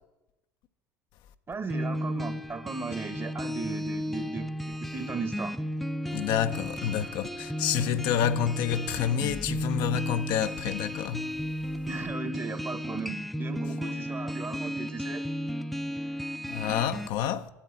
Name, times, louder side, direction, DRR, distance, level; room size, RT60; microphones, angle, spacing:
voice 1, 1.5-5.6 11.9-15.3, right 4 dB, 25° right, 1.1 m, -36 dB
sound 1, 1.7-17.1, equal, ahead, 0.6 m, -34 dB
voice 2, 6.1-11.2 16.5-17.5, left 9 dB, 55° left, 0.7 m, -28 dB
10.0 x 8.4 x 9.2 m
figure-of-eight pair, 65°, 9 cm